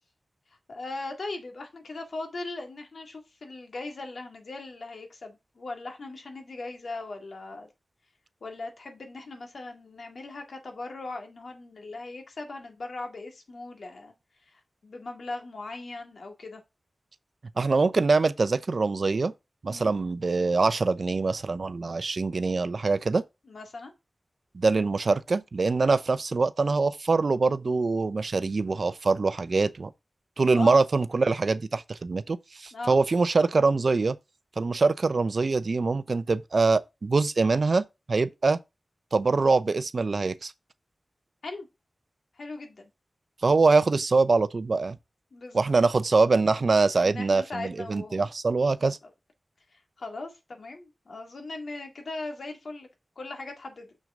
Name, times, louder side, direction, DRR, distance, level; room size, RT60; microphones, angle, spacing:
voice 1, 0.7-7.7 8.4-14.1 14.5-16.6 19.7-19.9 23.5-23.9 30.5-30.8 32.7-33.0 41.4-41.7 42.4-42.9 45.3-45.7 47.0-48.3 49.7-52.9 53.2-53.9, left 2 dB, 80° left, 2.0 m, -39 dB
voice 2, 17.6-19.3 19.6-23.2 24.5-29.9 30.4-34.2 34.6-38.6 39.1-40.5 43.4-45.0 45.5-49.0, right 3 dB, 60° right, 0.6 m, -24 dB
6.6 x 6.2 x 3.6 m
wide cardioid pair, 85°, 0 cm